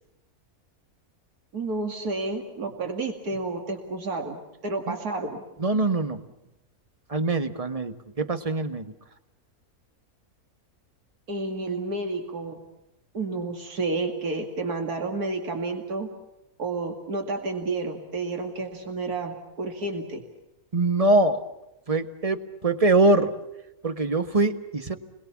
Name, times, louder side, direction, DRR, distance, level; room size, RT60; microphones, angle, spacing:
voice 1, 1.5-5.4 11.3-12.6 13.1-16.1 16.6-20.2, right 3 dB, 80° right, 4 dB, 2.8 m, -30 dB
voice 2, 5.6-6.2 7.1-8.9 20.7-21.4 21.9-23.3 23.8-25.0, right 2 dB, 25° right, 9 dB, 1.4 m, -23 dB
29.5 x 22.5 x 7.2 m, 0.89 s
omnidirectional pair, 1.6 m